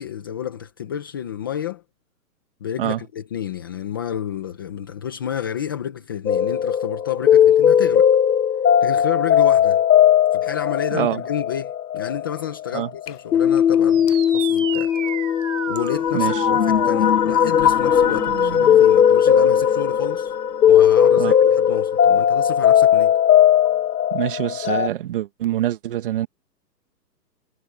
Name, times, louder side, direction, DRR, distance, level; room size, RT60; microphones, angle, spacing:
voice 1, 0.0-1.8 2.6-8.1 8.8-9.8 10.3-15.0 15.7-20.4 20.7-23.1, left 9 dB, 15° left, 0.7 m, -30 dB
sound 1, 6.3-24.9, left 9 dB, 65° left, 1.3 m, -17 dB
voice 2, 10.9-11.2 12.7-12.9 16.1-16.4 21.2-21.3 24.1-26.3, right 13 dB, 30° right, 1.5 m, -25 dB
sound 2, 13.9-18.9, right 10 dB, 50° right, 4.6 m, -33 dB
hypercardioid pair, 170°, 50 cm